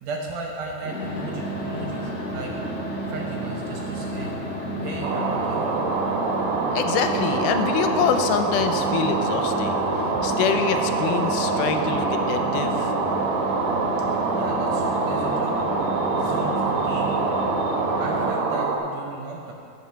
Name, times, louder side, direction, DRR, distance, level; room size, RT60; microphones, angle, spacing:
voice 1, 0.0-2.6 3.1-4.4 4.7-5.8 14.3-15.6 16.1-17.1 18.0-19.5, right 3 dB, 75° right, 0 dB, 1.7 m, -35 dB
sound 1, 0.8-18.3, equal, 25° left, 1.5 m, -31 dB
sound 2, 5.0-18.8, right 4 dB, 90° right, 1.2 m, -25 dB
voice 2, 6.7-12.9, left 7 dB, 90° left, 7 dB, 2.2 m, -25 dB
8.3 x 6.6 x 5.7 m, 2.4 s
omnidirectional pair, 3.6 m